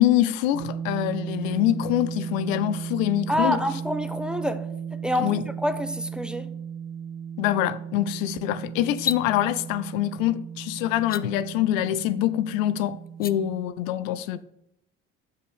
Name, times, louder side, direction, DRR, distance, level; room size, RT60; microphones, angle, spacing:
voice 1, 0.0-3.6 5.2-5.4 7.4-14.4, left 12 dB, 75° left, 0.6 m, -25 dB
sound 1, 0.5-13.6, right 7 dB, 50° right, 1.5 m, -36 dB
voice 2, 3.3-4.7 5.0-6.5, equal, ahead, 0.8 m, -27 dB
sound 2, 8.9-9.2 11.0-11.2 13.1-13.3, left 7 dB, 25° left, 0.5 m, -30 dB
7.1 x 5.6 x 6.4 m
hypercardioid pair, 55°, 40 cm